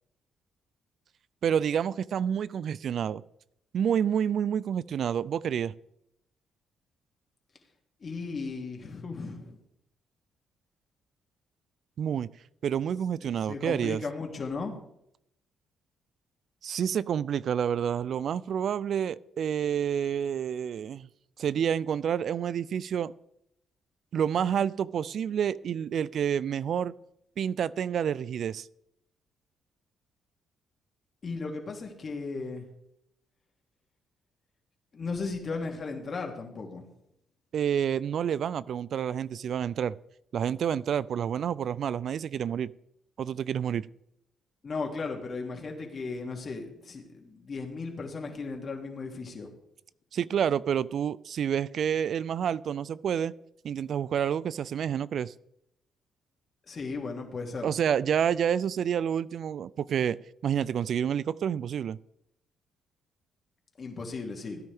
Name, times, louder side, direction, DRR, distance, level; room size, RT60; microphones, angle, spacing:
voice 1, 1.4-3.2 3.7-5.7 12.0-12.3 12.6-14.0 16.6-21.1 21.4-23.1 24.1-26.9 27.4-28.7 37.5-40.0 40.3-42.7 43.2-43.9 50.1-53.3 53.6-55.3 57.6-60.2 60.4-62.0, right 8 dB, 60° right, 0.4 m, -28 dB
voice 2, 8.0-9.6 13.5-14.7 31.2-32.6 34.9-36.8 44.6-49.5 56.7-57.7 63.8-64.6, left 4 dB, 45° left, 2.7 m, -36 dB
17.0 x 9.6 x 3.6 m
cardioid pair, 90°, 0 cm